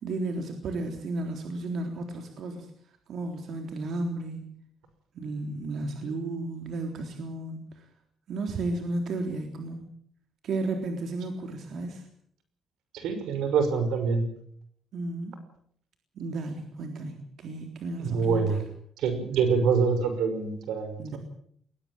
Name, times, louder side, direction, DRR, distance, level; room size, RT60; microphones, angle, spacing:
voice 1, 0.0-2.7 3.1-4.6 5.2-7.6 8.3-9.8 10.4-12.0 14.9-15.4 16.2-18.6 21.0-21.2, right 2 dB, 65° right, 4 dB, 3.7 m, -33 dB
voice 2, 12.9-14.2 18.0-18.6 19.0-21.2, right 5 dB, 90° right, 9 dB, 5.9 m, -25 dB
21.5 x 18.0 x 8.9 m, 0.64 s
cardioid pair, 120°, 0 cm